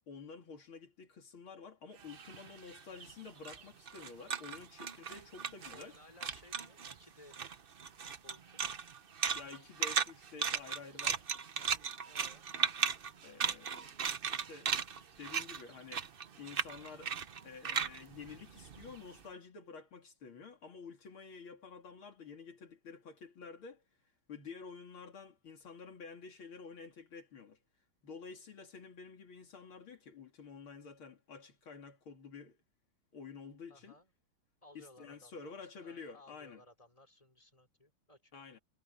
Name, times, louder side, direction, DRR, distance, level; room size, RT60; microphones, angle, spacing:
voice 1, 0.1-5.9 9.3-11.3 13.2-13.9 14.3-14.7 15.2-16.1 16.4-17.1 17.4-23.8 24.3-27.6 28.0-32.6 33.1-33.9 34.7-36.6 38.3-38.6, left 5 dB, 75° left, 3.3 m, -50 dB
sound 1, 2.0-6.0 6.2-7.0 7.3-19.1, right 6 dB, 80° right, 0.5 m, -37 dB
voice 2, 5.7-7.5 8.2-8.6 11.6-12.5 33.7-34.1 34.6-38.4, left 1 dB, 15° left, 4.8 m, -60 dB
omnidirectional pair, 2.3 m